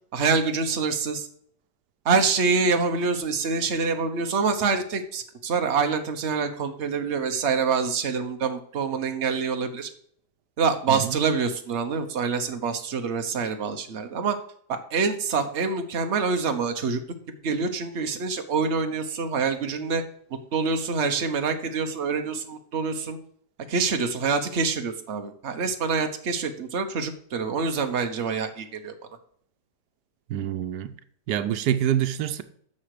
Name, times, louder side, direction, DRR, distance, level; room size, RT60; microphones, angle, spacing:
voice 1, 0.1-1.3 2.0-9.9 10.6-14.4 14.7-17.0 17.4-20.0 20.5-23.2 23.7-28.9, right 5 dB, 45° right, 1.3 m, -26 dB
voice 2, 30.3-30.9 31.3-32.4, right 10 dB, 90° right, 1.3 m, -26 dB
10.0 x 6.5 x 4.9 m
omnidirectional pair, 1.7 m